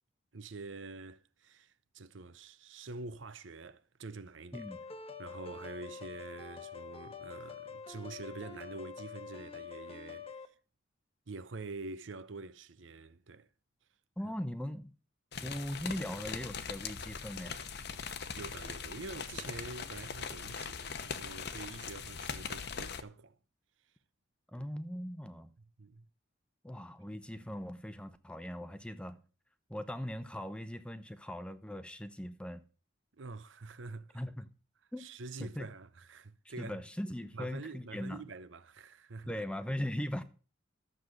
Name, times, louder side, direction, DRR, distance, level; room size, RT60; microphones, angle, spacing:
voice 1, 0.3-4.7 5.2-10.5 11.3-13.5 14.2-14.3 18.0-23.4 24.5-24.7 25.8-26.1 33.2-34.2 35.0-36.8 37.3-39.4, right 3 dB, 65° right, 0.8 m, -46 dB
sound 1, 4.5-10.5, left 5 dB, 30° left, 1.1 m, -46 dB
voice 2, 14.2-14.9 15.4-17.6 24.5-25.5 26.6-29.2 29.7-32.6 34.1-34.5 34.9-35.0 35.4-35.7 36.4-38.2 39.3-40.2, left 1 dB, 5° left, 0.8 m, -39 dB
sound 2, 15.3-23.0, left 6 dB, 60° left, 1.0 m, -41 dB
13.0 x 7.7 x 6.5 m
head